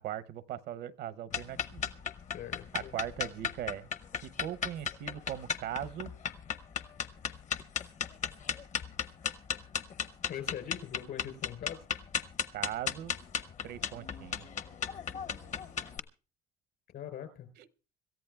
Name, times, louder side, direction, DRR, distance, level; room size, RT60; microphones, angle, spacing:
voice 1, 0.0-1.9 2.7-3.9 4.2-6.1 12.5-13.1 13.6-14.5 17.6-17.7, right 11 dB, 75° right, 0.7 m, -39 dB
sound 1, 1.3-16.0, left 7 dB, 45° left, 0.8 m, -36 dB
voice 2, 2.3-2.9 10.3-11.9 16.9-17.5, left 9 dB, 70° left, 3.8 m, -42 dB
26.0 x 14.0 x 2.3 m
cardioid pair, 110°, 17 cm